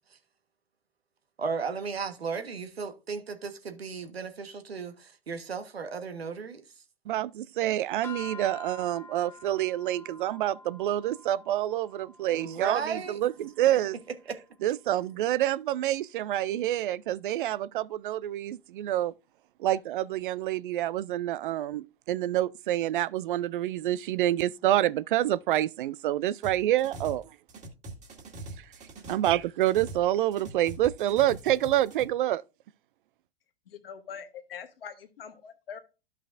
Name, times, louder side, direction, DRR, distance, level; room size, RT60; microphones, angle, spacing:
voice 1, 1.4-6.6 12.3-13.2 14.3-14.4, right 5 dB, 85° right, 1.3 m, -35 dB
voice 2, 7.1-14.0 14.6-19.1 19.6-27.3 28.6-28.7 29.1-32.4, right 13 dB, 60° right, 0.4 m, -27 dB
sound 1, 8.0-14.4, left 3 dB, 5° left, 1.7 m, -48 dB
sound 2, 26.4-27.2 27.5-30.1 30.3-32.0, right 2 dB, 25° right, 2.0 m, -42 dB
voice 3, 33.7-35.8, left 7 dB, 70° left, 1.4 m, -43 dB
13.0 x 5.7 x 2.5 m
hypercardioid pair, 105°, 30 cm